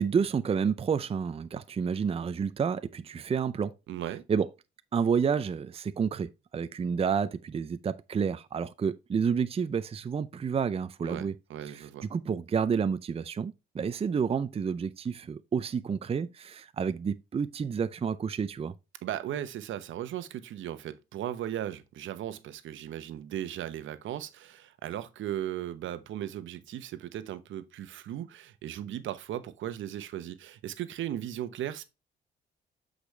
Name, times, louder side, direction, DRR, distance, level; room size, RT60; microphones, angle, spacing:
voice 1, 0.0-3.7 4.3-4.5 4.9-11.4 11.7-11.8 12.1-18.7, right 6 dB, 30° right, 0.5 m, -29 dB
voice 2, 3.9-4.2 11.0-12.1 19.0-31.8, right 11 dB, 75° right, 1.0 m, -37 dB
8.1 x 5.1 x 3.3 m
cardioid pair, 90°, 20 cm